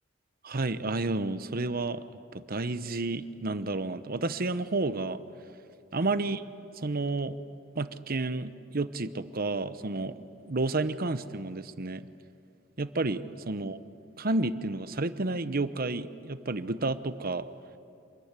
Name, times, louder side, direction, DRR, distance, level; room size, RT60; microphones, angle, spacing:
voice 1, 0.4-2.0 2.3-5.2 5.9-6.4 6.8-7.4 7.7-12.1 12.8-13.8 14.2-17.5, right 2 dB, 50° right, 12 dB, 1.0 m, -31 dB
26.5 x 21.5 x 9.8 m, 2.6 s
head